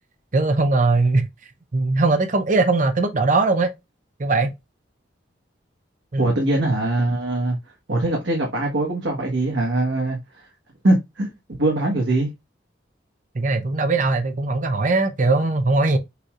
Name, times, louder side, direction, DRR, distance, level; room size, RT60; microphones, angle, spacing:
voice 1, 0.3-1.3 1.7-3.7 4.2-4.5 6.1-6.3 13.3-16.0, right 3 dB, 45° right, 0.6 m, -20 dB
voice 2, 6.2-7.6 7.9-10.2 10.8-11.3 11.6-12.3, right 2 dB, 90° right, 1.4 m, -21 dB
6.6 x 3.2 x 2.4 m
head